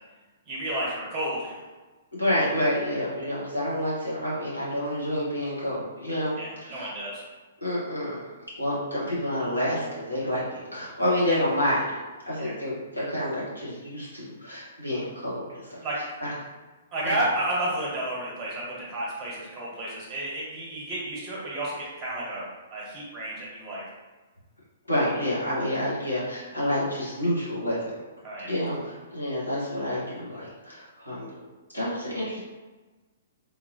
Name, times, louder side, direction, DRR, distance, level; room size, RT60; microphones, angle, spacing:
voice 1, 0.5-1.6 6.4-7.2 12.4-12.5 15.8-16.0 16.9-23.8 28.2-28.5, right 1 dB, 15° right, -6 dB, 1.2 m, -31 dB
voice 2, 2.1-6.3 6.6-6.9 7.6-8.2 8.6-15.8 16.2-16.3 17.0-17.2 24.9-27.9 28.4-31.3 31.7-32.4, left 1 dB, 85° left, -8 dB, 1.5 m, -28 dB
3.7 x 2.6 x 2.9 m, 1.2 s
figure-of-eight pair, 115°, 0 cm